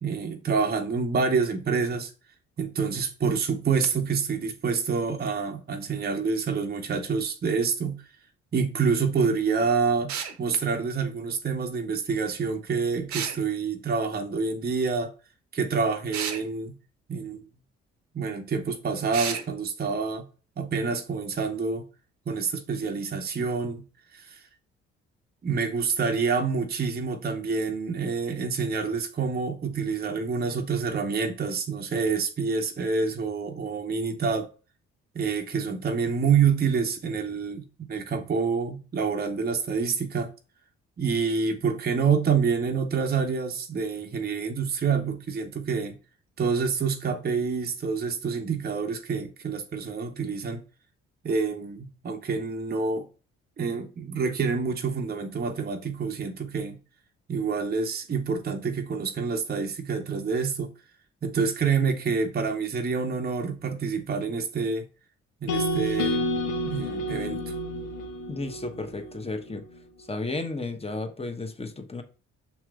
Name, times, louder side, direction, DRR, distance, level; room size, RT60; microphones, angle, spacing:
voice 1, 0.0-2.1 2.6-8.0 8.5-15.1 15.5-16.7 17.1-17.4 18.1-20.3 20.6-21.9 22.3-23.8 24.1-24.4 25.4-34.5 35.1-40.3 41.0-46.0 46.4-50.6 51.2-53.1 53.6-56.8 57.3-60.7 61.2-64.8 65.4-66.2 66.6-67.5, right 5 dB, 30° right, 0.7 m, -27 dB
sound 1, 10.1-10.4 13.1-13.4 16.1-16.4 19.1-19.4, right 7 dB, 60° right, 0.8 m, -31 dB
sound 2, 65.5-69.6, left 1 dB, 80° left, 0.9 m, -30 dB
voice 2, 68.3-69.6 70.1-72.0, left 2 dB, 20° left, 0.9 m, -33 dB
6.6 x 3.0 x 2.4 m
hypercardioid pair, 45°, 32 cm